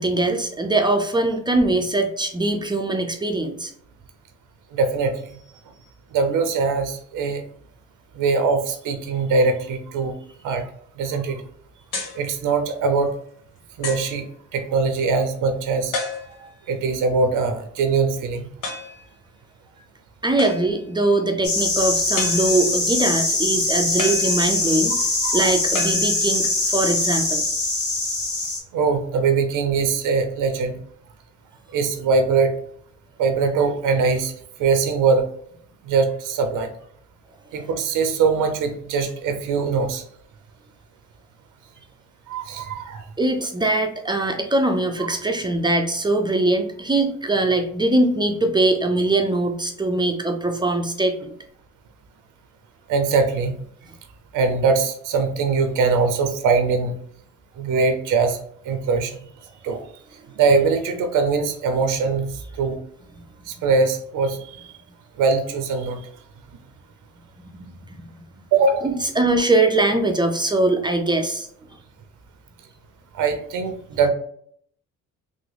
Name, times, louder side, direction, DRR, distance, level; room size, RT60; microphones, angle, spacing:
voice 1, 0.0-3.7 20.2-25.1 25.3-27.4 43.2-51.3 67.9-68.1 68.8-71.5, right 2 dB, 15° right, 3 dB, 0.4 m, -22 dB
voice 2, 4.7-5.4 6.1-7.4 8.2-10.2 10.4-10.6 11.0-11.4 12.2-13.2 13.8-14.3 14.5-15.9 16.7-18.5 25.0-25.5 28.7-30.8 31.7-32.5 33.2-34.3 34.6-35.3 35.8-36.7 37.5-40.0 42.3-43.0 52.9-53.6 54.3-56.9 57.6-58.4 58.6-59.2 59.6-59.8 60.4-62.3 62.6-62.8 63.5-64.7 65.2-66.0 68.5-68.9 73.1-74.1, right 4 dB, 80° right, 7 dB, 0.6 m, -22 dB
sound 1, 11.9-12.3 13.0-13.1 13.8-14.2 15.9-16.6 18.6-19.0 20.4-20.9 22.2-22.9 24.0-24.9 25.7-26.6, left 3 dB, 85° left, 1.0 m, -31 dB
sound 2, 21.4-28.6, left 2 dB, 65° left, 1.3 m, -22 dB
3.5 x 2.0 x 3.3 m, 0.65 s
cardioid pair, 85°, 31 cm